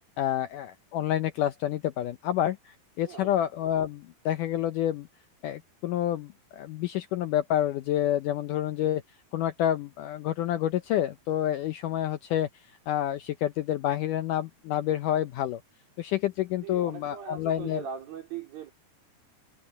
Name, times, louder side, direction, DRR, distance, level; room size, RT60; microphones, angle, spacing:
voice 1, 0.2-5.1 5.4-9.0 9.3-12.5 12.9-15.6 16.0-17.8, left 12 dB, 75° left, 1.9 m, -28 dB
voice 2, 3.1-3.4 16.6-18.7, right 8 dB, 65° right, 5.6 m, -40 dB
omnidirectional pair, 4.5 m